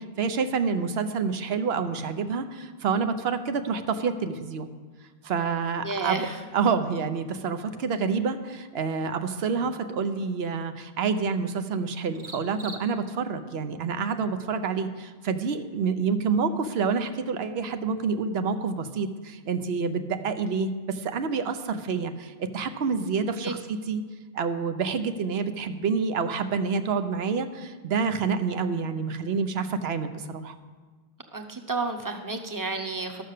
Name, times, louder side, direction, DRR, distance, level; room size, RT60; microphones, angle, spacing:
voice 1, 0.0-4.7 5.2-6.3 6.5-24.0 24.3-30.6, right 5 dB, 70° right, 9 dB, 1.0 m, -28 dB
voice 2, 5.8-6.4 23.4-23.5 31.3-33.2, right 3 dB, 20° right, 4 dB, 0.8 m, -31 dB
sound 1, 8.5-13.4, right 2 dB, 40° right, 1.2 m, -51 dB
12.5 x 6.5 x 6.6 m, 1.4 s
omnidirectional pair, 1.1 m